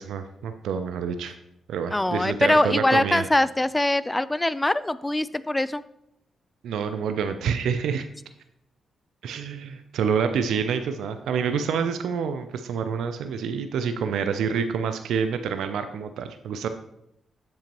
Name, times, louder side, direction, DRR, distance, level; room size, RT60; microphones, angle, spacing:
voice 1, 0.0-1.3 1.7-3.3 6.6-8.1 9.2-16.7, right 6 dB, 80° right, 8 dB, 0.4 m, -27 dB
voice 2, 1.9-5.8, left 1 dB, 20° left, 16 dB, 0.4 m, -23 dB
7.4 x 7.2 x 3.0 m, 0.80 s
supercardioid pair, 45°, 0 cm